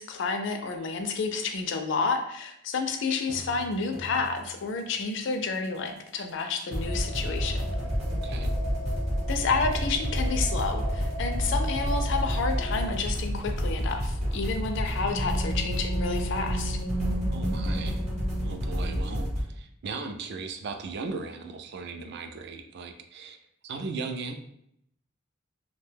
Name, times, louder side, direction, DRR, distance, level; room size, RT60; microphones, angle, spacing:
voice 1, 0.0-7.7 9.3-16.8, left 4 dB, 65° left, 6 dB, 0.4 m, -30 dB
sound 1, 3.3-4.5 6.7-19.4, equal, 35° right, 0.8 m, -30 dB
sound 2, 6.9-12.9, equal, 75° right, 0.9 m, -33 dB
voice 2, 8.1-8.5 17.3-18.1 18.4-23.4 23.6-24.3, right 4 dB, 60° right, 6 dB, 0.3 m, -37 dB
sound 3, 14.7-19.1, right 2 dB, ahead, 0.5 m, -35 dB
2.5 x 2.2 x 3.3 m, 0.74 s
head